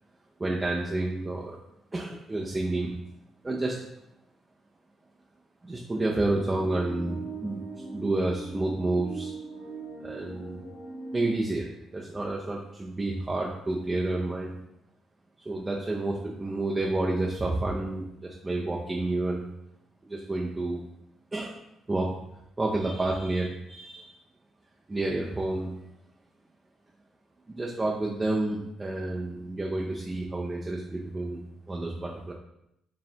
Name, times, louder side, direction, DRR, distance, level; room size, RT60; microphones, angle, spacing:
voice 1, 0.4-1.6 1.9-2.9 3.4-3.8 5.6-7.6 7.9-9.3 10.0-10.6 11.1-14.6 15.5-19.5 20.0-20.8 21.3-21.6 21.9-22.1 22.6-24.1 24.9-25.7 27.5-31.4 31.7-32.3, right 2 dB, 20° right, -3 dB, 0.5 m, -30 dB
sound 1, 6.0-11.4, right 3 dB, 30° left, 1.1 m, -40 dB
4.1 x 3.2 x 2.8 m, 0.80 s
cardioid pair, 90°, 0 cm